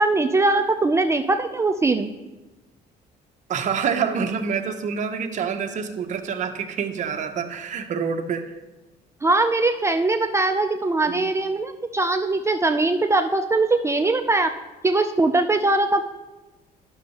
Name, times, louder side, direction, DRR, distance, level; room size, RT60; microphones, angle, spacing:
voice 1, 0.0-2.1 9.2-14.5 14.8-16.0, right 2 dB, 15° right, 6 dB, 0.4 m, -21 dB
voice 2, 3.5-8.6 11.1-11.3, right 6 dB, 45° right, 6 dB, 0.8 m, -27 dB
11.0 x 6.3 x 2.9 m, 1.1 s
cardioid pair, 110°, 17 cm